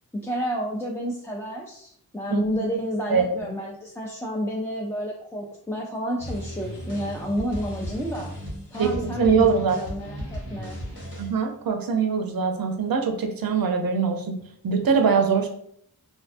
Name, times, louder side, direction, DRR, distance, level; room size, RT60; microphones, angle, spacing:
voice 1, 0.2-8.3 8.7-10.8, equal, 5° left, -3 dB, 0.3 m, -30 dB
sound 1, 6.2-11.4, equal, 80° left, 1.3 m, -35 dB
voice 2, 8.8-9.8 11.2-14.4 14.6-15.5, right 6 dB, 65° right, 5 dB, 0.5 m, -22 dB
2.6 x 2.3 x 2.5 m, 0.67 s
cardioid pair, 50°, 39 cm